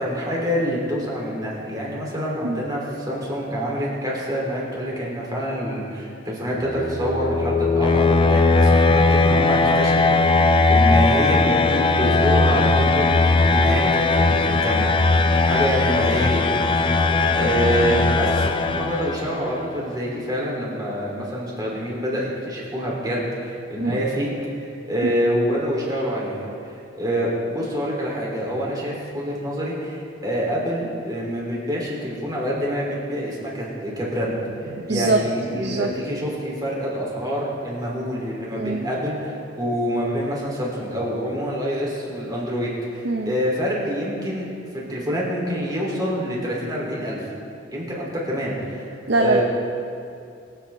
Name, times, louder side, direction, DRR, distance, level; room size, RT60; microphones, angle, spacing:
voice 1, 0.0-16.6 16.9-24.3 24.9-26.5 26.9-34.4 34.8-47.2 47.7-48.9 49.1-49.4, equal, 20° right, -5 dB, 3.1 m, -26 dB
sound 1, 6.6-19.4, left 3 dB, 25° left, 0.4 m, -19 dB
voice 2, 34.7-35.2 35.5-35.9 38.5-38.9 43.0-43.4 49.1-49.4, right 2 dB, 60° right, 3 dB, 0.7 m, -23 dB
24.0 x 8.2 x 3.5 m, 2.5 s
head